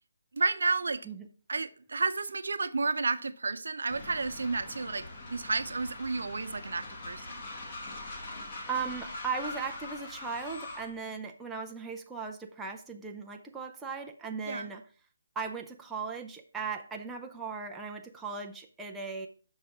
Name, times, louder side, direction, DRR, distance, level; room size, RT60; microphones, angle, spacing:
voice 1, 0.3-1.0 1.5-7.4 14.5-14.7, right 4 dB, 75° right, 0.7 m, -31 dB
Train, 3.9-11.0, left 2 dB, 30° left, 1.7 m, -43 dB
voice 2, 8.7-14.8 15.4-19.3, right 5 dB, 5° right, 0.4 m, -37 dB
6.3 x 5.1 x 5.8 m
hypercardioid pair, 170°, 0 cm